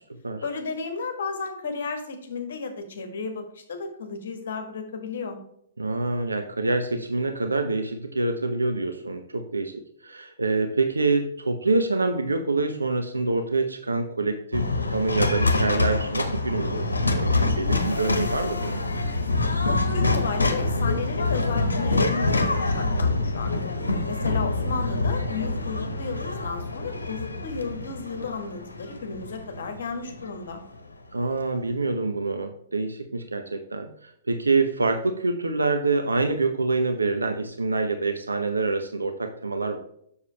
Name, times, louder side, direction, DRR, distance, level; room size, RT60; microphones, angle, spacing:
voice 1, 0.4-5.4 19.7-30.6, left 4 dB, 55° left, 6 dB, 1.6 m, -33 dB
voice 2, 5.8-18.8 24.4-24.8 31.1-39.8, right 3 dB, 75° right, 6 dB, 0.7 m, -26 dB
sound 1, 14.5-30.7, left 2 dB, 75° left, 1.1 m, -26 dB
7.1 x 6.5 x 3.3 m, 0.71 s
figure-of-eight pair, 115°, 0 cm